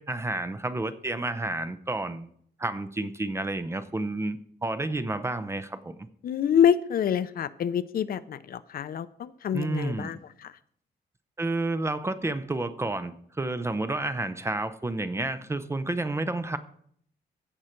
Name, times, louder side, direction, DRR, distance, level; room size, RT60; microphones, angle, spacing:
voice 1, 0.0-2.3 2.6-6.1 9.5-10.2 11.4-16.6, right 2 dB, 15° right, 11 dB, 0.5 m, -30 dB
voice 2, 6.2-10.5, left 9 dB, 55° left, 14 dB, 0.5 m, -26 dB
15.5 x 6.3 x 4.4 m, 0.64 s
wide cardioid pair, 175°, 18 cm